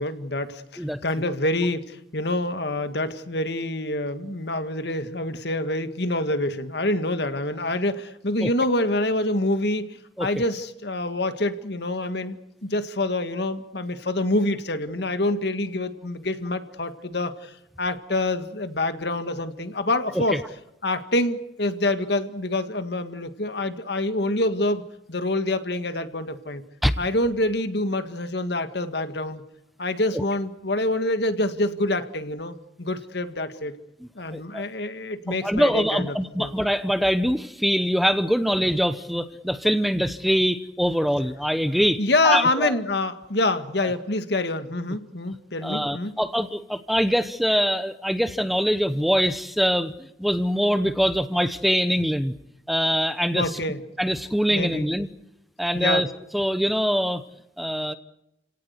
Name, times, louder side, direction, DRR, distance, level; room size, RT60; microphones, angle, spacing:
voice 1, 0.0-20.4 20.8-24.8 25.1-26.6 27.0-29.4 29.8-33.8 34.1-36.5 42.0-46.2 53.3-53.8 54.5-54.9 55.7-56.1, left 2 dB, 65° left, 10 dB, 1.8 m, -26 dB
voice 2, 34.3-34.6 35.3-42.7 45.6-49.9 50.2-52.3 52.7-53.5 54.0-55.1 55.6-56.1 56.3-57.2 57.6-57.9, equal, ahead, 11 dB, 0.8 m, -23 dB
30.0 x 18.0 x 8.1 m, 0.84 s
head